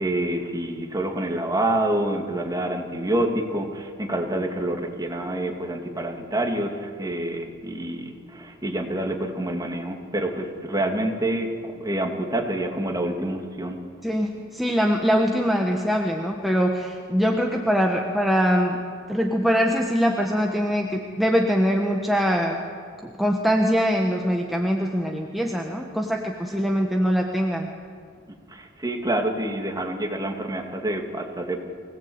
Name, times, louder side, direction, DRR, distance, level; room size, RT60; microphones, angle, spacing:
voice 1, 0.0-13.8 28.5-31.6, right 1 dB, 20° right, 2 dB, 2.5 m, -27 dB
voice 2, 14.0-18.8 19.1-22.6 23.0-27.7, equal, ahead, 0 dB, 1.4 m, -23 dB
24.0 x 18.0 x 8.8 m, 2.1 s
head